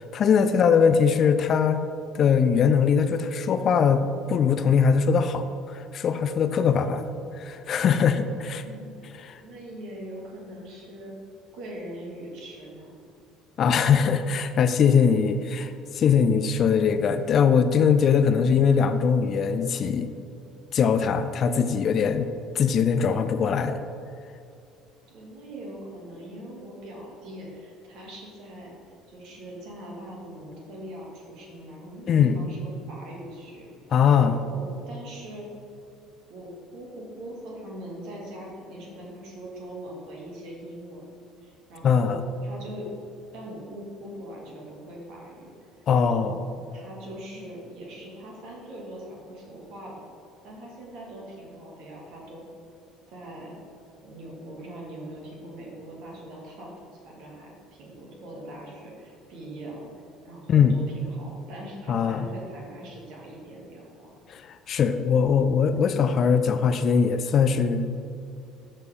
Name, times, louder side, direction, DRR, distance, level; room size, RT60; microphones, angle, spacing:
voice 1, 0.0-1.8 2.1-7.0 7.3-8.6 13.6-20.1 20.7-22.3 22.5-23.8 32.1-32.4 33.9-34.4 41.8-42.2 45.9-46.4 60.5-60.8 61.9-62.3 64.3-64.4 64.7-68.0, left 6 dB, 45° left, 10 dB, 0.4 m, -21 dB
voice 2, 0.6-0.9 8.6-11.1 11.5-13.0 25.1-33.7 34.2-35.5 36.3-41.1 41.4-42.9 43.3-46.4 46.7-49.9 50.4-52.4 53.1-53.6 54.0-56.7 57.0-57.5 57.8-59.9 60.2-64.2, right 1 dB, 60° right, -2 dB, 2.0 m, -41 dB
12.5 x 4.5 x 3.5 m, 2.5 s
figure-of-eight pair, 60°, 0 cm